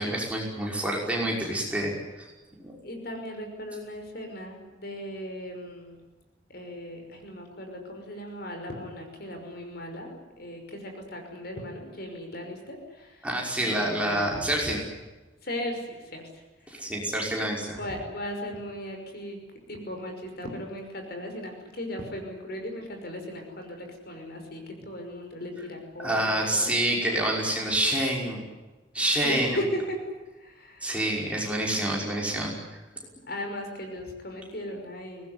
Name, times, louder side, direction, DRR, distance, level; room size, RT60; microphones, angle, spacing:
voice 1, 0.0-1.9 2.6-2.8 13.2-14.8 16.7-17.8 26.0-28.4 28.9-29.5 30.8-32.8, right 1 dB, 5° right, -2 dB, 5.6 m, -27 dB
voice 2, 2.8-6.0 6.5-13.3 13.6-14.5 15.4-17.0 17.8-19.4 19.7-26.8 29.2-30.0 30.4-30.9 33.3-35.3, left 1 dB, 50° left, 4 dB, 5.7 m, -37 dB
24.0 x 19.5 x 9.8 m, 1.2 s
head